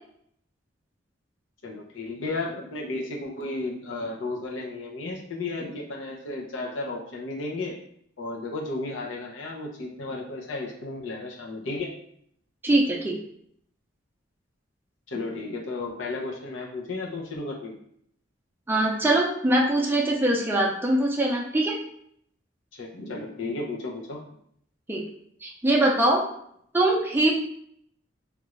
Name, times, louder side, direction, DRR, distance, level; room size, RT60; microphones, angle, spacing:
voice 1, 1.6-7.8 8.2-11.9 15.1-17.8 22.7-24.2, left 2 dB, 90° left, -1 dB, 0.7 m, -33 dB
voice 2, 12.6-13.2 18.7-21.8 24.9-25.0 25.4-26.2 26.7-27.3, right 1 dB, 10° right, -2 dB, 0.5 m, -22 dB
3.4 x 2.5 x 3.1 m, 0.69 s
head